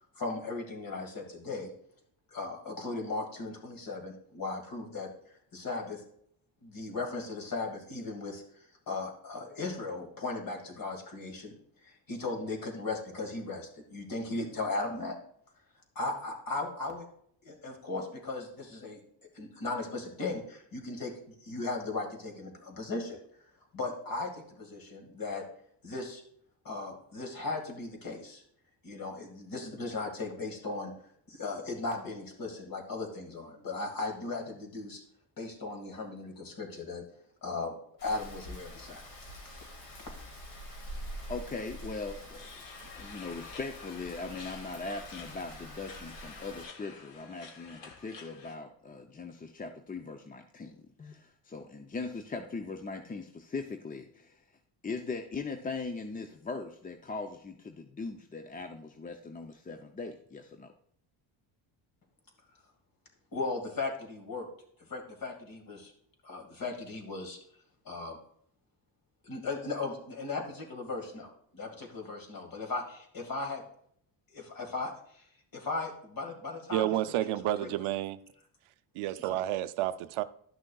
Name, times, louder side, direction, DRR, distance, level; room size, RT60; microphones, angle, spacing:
voice 1, 0.2-1.7 2.3-5.1 5.5-6.0 6.6-8.4 8.9-11.5 11.8-15.2 16.0-17.1 17.4-19.0 19.3-21.1 21.4-23.2 23.7-25.4 25.8-26.2 26.6-28.4 28.8-30.9 31.3-35.0 35.4-37.0 37.4-37.7 38.0-39.0 39.4-39.7 63.3-64.5 64.9-65.9 66.2-67.4 67.9-68.2 69.2-73.6 74.3-75.2 75.5-76.9 77.2-77.7 79.3-79.4, left 3 dB, 45° left, 2.0 m, -37 dB
Rain, 38.0-46.6, equal, 85° left, 2.6 m, -46 dB
voice 2, 41.3-42.5 43.0-54.4 54.8-60.7, left 4 dB, 20° left, 0.5 m, -40 dB
sound 1, 42.4-48.6, left 5 dB, 60° left, 1.3 m, -49 dB
voice 3, 76.7-78.2 78.9-80.2, right 13 dB, 85° right, 0.6 m, -30 dB
11.5 x 6.2 x 2.3 m
cardioid pair, 105°, 48 cm